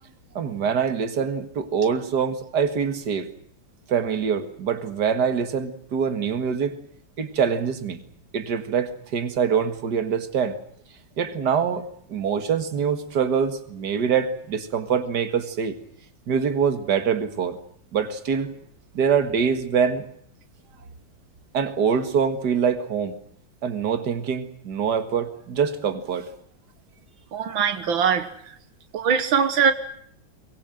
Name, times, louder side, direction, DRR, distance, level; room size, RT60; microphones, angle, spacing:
voice 1, 0.4-3.3 3.9-6.8 7.2-8.0 8.3-10.6 11.2-15.8 16.3-17.6 17.9-18.5 18.9-20.1 21.5-23.2 23.6-26.3, right 7 dB, 60° right, 10 dB, 2.3 m, -24 dB
voice 2, 27.3-28.3 28.9-29.7, right 6 dB, 85° right, 10 dB, 2.1 m, -21 dB
23.5 x 22.0 x 7.7 m, 0.66 s
omnidirectional pair, 2.1 m